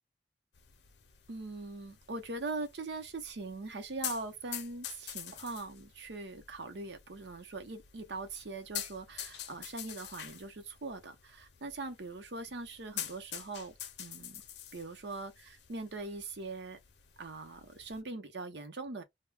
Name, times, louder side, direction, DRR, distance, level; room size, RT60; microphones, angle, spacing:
sound 1, 0.5-18.0, left 10 dB, 75° left, 0.6 m, -47 dB
voice 1, 1.3-14.4 14.7-16.8 17.2-19.0, right 3 dB, 80° right, 0.7 m, -41 dB
2.2 x 2.2 x 3.4 m
head